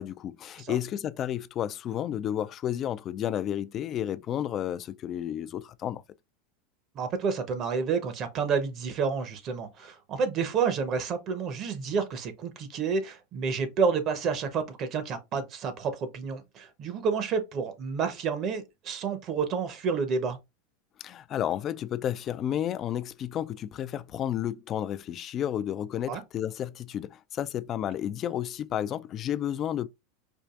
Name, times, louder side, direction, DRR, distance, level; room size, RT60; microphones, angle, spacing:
voice 1, 0.0-6.0 21.0-29.9, left 10 dB, 35° left, 0.3 m, -32 dB
voice 2, 6.9-20.4 26.1-26.2, right 5 dB, 40° right, 0.8 m, -29 dB
4.5 x 2.5 x 2.4 m
supercardioid pair, 115°, 0 cm